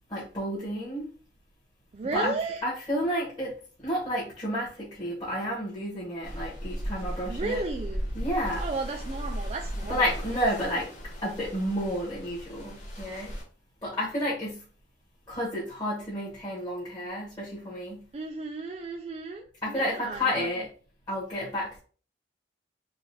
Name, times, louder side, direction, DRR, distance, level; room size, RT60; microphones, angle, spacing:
voice 1, 0.1-1.1 2.1-2.4 2.6-7.6 8.1-8.6 9.9-10.9 11.2-13.4 13.8-14.6 15.3-18.1 19.6-20.7 21.1-21.8, equal, 25° left, 1.4 m, -31 dB
voice 2, 1.9-2.6 7.3-8.0 8.6-10.0 18.1-20.5, right 3 dB, 35° right, 0.3 m, -34 dB
sound 1, 6.2-13.4, equal, 40° left, 1.2 m, -36 dB
4.0 x 2.4 x 4.0 m
head